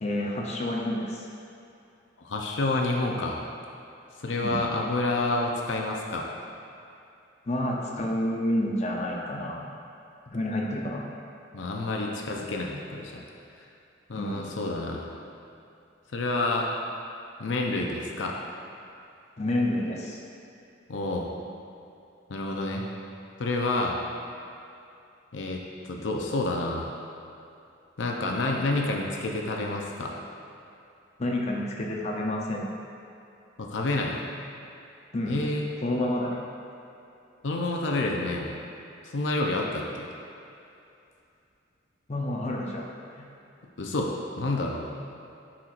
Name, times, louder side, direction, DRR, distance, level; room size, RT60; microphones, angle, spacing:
voice 1, 0.0-1.3 4.4-4.6 7.5-9.6 10.3-11.0 14.1-14.5 19.4-20.2 31.2-32.6 35.1-35.4 35.8-36.4 42.1-42.8 43.1-43.2, left 1 dB, 35° left, -2 dB, 0.7 m, -29 dB
voice 2, 2.2-3.4 4.2-6.3 11.5-13.2 14.1-15.1 16.1-16.7 17.4-18.4 20.9-21.3 22.3-22.8 23.4-24.0 25.3-25.6 25.9-26.9 28.0-30.1 33.6-34.2 35.3-35.7 37.4-38.6 39.0-40.1 43.8-44.9, left 2 dB, 80° left, 0 dB, 0.6 m, -28 dB
10.0 x 4.4 x 2.5 m, 2.7 s
head